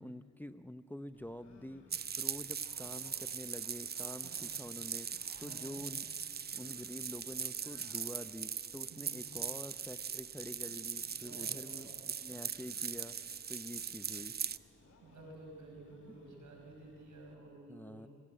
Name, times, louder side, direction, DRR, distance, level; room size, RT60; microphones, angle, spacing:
voice 1, 0.0-14.7 17.7-18.1, left 1 dB, 5° left, 11 dB, 0.7 m, -47 dB
Mechanisms, 1.1-17.3, left 2 dB, 40° left, 2.4 m, -65 dB
sound 1, 1.3-2.1 2.6-4.5 4.9-5.9 6.5-7.1 7.4-8.2 9.0-9.8 10.6-11.5 12.3-13.0 13.6-14.3 14.8-15.4 15.8-16.9, left 3 dB, 65° left, 2.1 m, -64 dB
sound 2, 1.9-14.6, right 7 dB, 35° right, 0.5 m, -40 dB
voice 2, 4.2-4.6 5.4-5.8 8.9-9.3 11.0-12.2 14.1-14.2 15.0-18.1, right 2 dB, 70° right, 1 dB, 5.3 m, -53 dB
25.5 x 11.0 x 9.1 m, 2.4 s
supercardioid pair, 45°, 31 cm